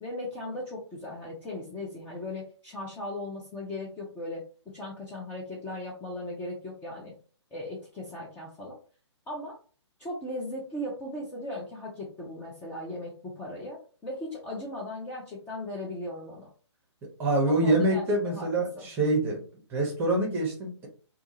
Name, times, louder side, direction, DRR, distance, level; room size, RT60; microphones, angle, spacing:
voice 1, 0.0-7.1 7.5-8.7 9.3-9.6 10.0-16.5 17.5-18.9, left 1 dB, 10° left, -5 dB, 0.5 m, -38 dB
voice 2, 17.2-19.4 19.7-20.9, right 1 dB, 15° right, -1 dB, 0.9 m, -25 dB
2.4 x 2.3 x 2.8 m, 0.39 s
figure-of-eight pair, 135°, 15 cm